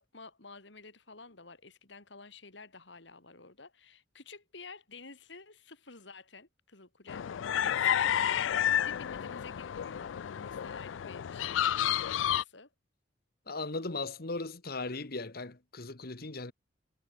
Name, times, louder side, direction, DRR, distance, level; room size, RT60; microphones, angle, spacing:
voice 1, 0.0-11.8 12.1-12.7, left 4 dB, 70° left, 3.1 m, -51 dB
sound 1, 7.1-12.4, left 10 dB, 85° left, 0.4 m, -30 dB
voice 2, 13.5-16.5, left 3 dB, 55° left, 1.5 m, -37 dB
head